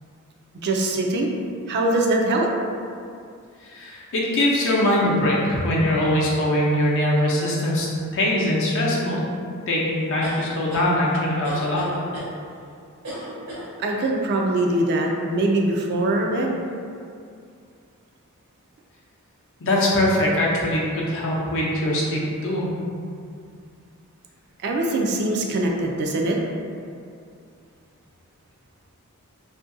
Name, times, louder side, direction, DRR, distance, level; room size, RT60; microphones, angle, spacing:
voice 1, 0.6-1.3 1.7-2.5 13.8-16.6 24.6-26.4, right 2 dB, 50° right, 1 dB, 0.3 m, -22 dB
voice 2, 3.6-9.2 9.7-11.9 19.6-22.8, left 1 dB, 60° left, -4 dB, 0.6 m, -22 dB
sound 1, 10.2-10.9 11.4-12.3 13.0-13.7, right 1 dB, 75° right, 0.8 m, -35 dB
2.6 x 2.4 x 2.6 m, 2.3 s
head